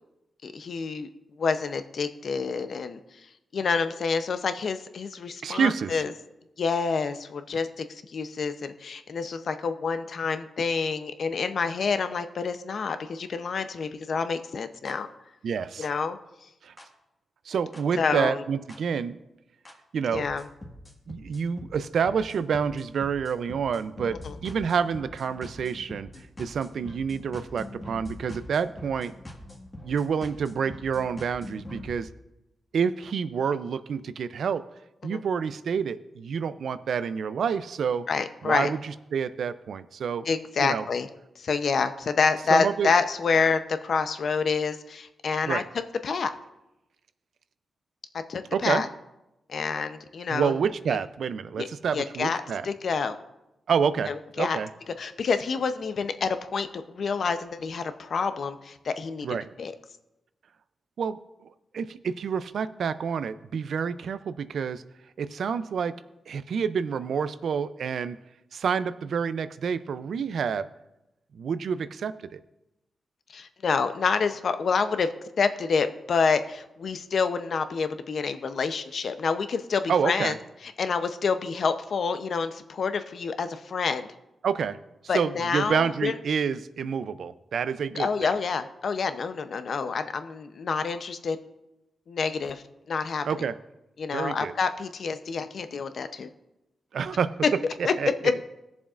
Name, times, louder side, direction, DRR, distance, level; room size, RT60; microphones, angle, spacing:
voice 1, 0.4-1.1 1.4-3.0 3.5-6.1 6.6-15.1 15.8-16.2 18.0-18.4 20.1-20.4 24.2-24.4 35.0-35.2 38.1-38.7 40.3-41.1 41.4-45.6 46.0-46.3 48.1-48.9 49.5-50.5 51.6-51.7 51.9-53.1 54.1-54.6 55.0-59.7 73.3-75.1 75.4-80.3 80.8-84.1 85.1-86.2 87.9-91.4 92.1-93.2 94.0-96.3 97.8-97.9 98.2-98.3, left 5 dB, 60° left, 10 dB, 0.6 m, -28 dB
voice 2, 5.4-6.0 15.4-15.9 16.6-16.7 17.5-19.2 19.9-20.3 21.1-26.1 26.4-29.1 29.8-32.1 32.7-34.6 35.0-38.1 38.4-40.3 40.6-40.8 42.5-42.9 45.5-45.6 48.5-48.8 50.3-52.7 53.7-54.7 59.2-59.5 61.0-61.2 61.7-64.8 65.2-65.9 66.3-68.2 68.5-70.7 71.3-72.4 79.9-80.4 84.4-84.8 85.1-88.3 93.2-93.5 94.1-94.5 96.9-97.3 98.0-98.1, right 6 dB, 70° right, 13 dB, 0.4 m, -28 dB
sound 1, 14.9-15.0 15.8-15.9 16.8-16.9 17.7-17.8 18.7-18.8 19.7-19.8 20.1-31.9, left 1 dB, 20° left, 1.6 m, -43 dB
20.0 x 7.0 x 2.5 m, 0.93 s
wide cardioid pair, 110°, 0 cm